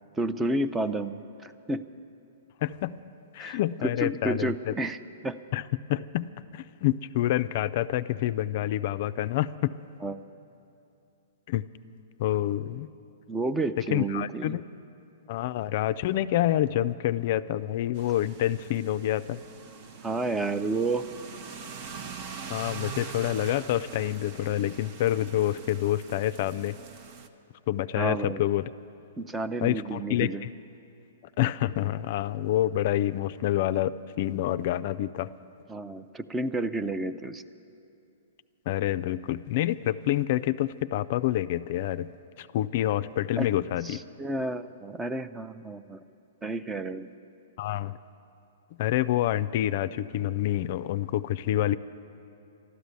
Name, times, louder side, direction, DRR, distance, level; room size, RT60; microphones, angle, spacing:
voice 1, 0.2-1.8 3.4-5.0 5.2-5.4 10.0-10.2 13.3-14.6 20.0-21.0 28.0-28.4 29.2-30.4 35.7-37.4 43.4-43.5 43.8-46.0 46.4-47.1, right 2 dB, 15° right, 12 dB, 0.4 m, -31 dB
voice 2, 2.6-2.9 3.3-4.7 5.5-5.6 5.9-9.7 11.5-11.6 12.2-12.9 13.9-14.6 15.3-19.4 22.5-26.7 27.7-28.7 29.6-30.3 31.4-33.9 34.2-35.3 38.7-42.1 42.4-44.0 47.6-48.0 48.8-51.8, left 13 dB, 50° left, 13 dB, 0.3 m, -27 dB
sound 1, 17.9-27.3, right 6 dB, 45° right, 0.9 m, -43 dB
13.0 x 11.5 x 8.1 m, 2.7 s
hypercardioid pair, 125°, 0 cm